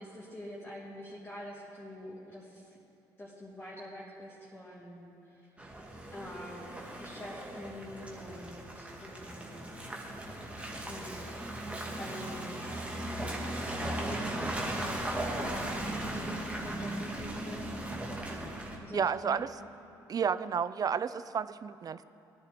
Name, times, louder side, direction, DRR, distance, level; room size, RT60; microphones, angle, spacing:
voice 1, 0.0-2.7 3.2-5.5 6.1-9.8 10.9-11.4 12.0-13.2 13.9-17.7 18.8-19.5, left 1 dB, 20° left, -7 dB, 3.0 m, -46 dB
Car passing by / Engine, 5.6-18.8, right 1 dB, 15° right, 2.2 m, -37 dB
voice 2, 18.9-19.5 20.1-22.0, right 7 dB, 40° right, 15 dB, 0.5 m, -31 dB
17.5 x 10.0 x 3.8 m, 2.7 s
supercardioid pair, 60°, 9 cm